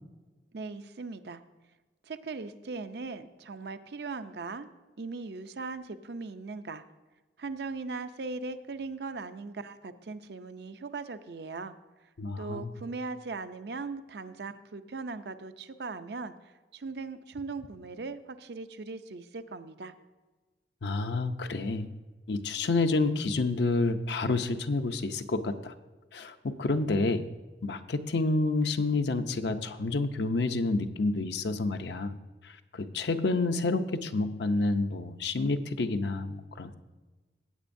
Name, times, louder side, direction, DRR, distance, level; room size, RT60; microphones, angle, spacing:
voice 1, 0.5-1.4 2.0-4.7 5.0-6.8 7.4-11.7 12.4-19.9, right 3 dB, 70° right, 11 dB, 0.5 m, -39 dB
voice 2, 12.2-12.7 20.8-21.9 22.3-25.7 26.1-27.3 27.6-32.1 32.4-36.7, left 3 dB, 80° left, 7 dB, 0.6 m, -29 dB
15.5 x 9.1 x 2.6 m, 1.2 s
head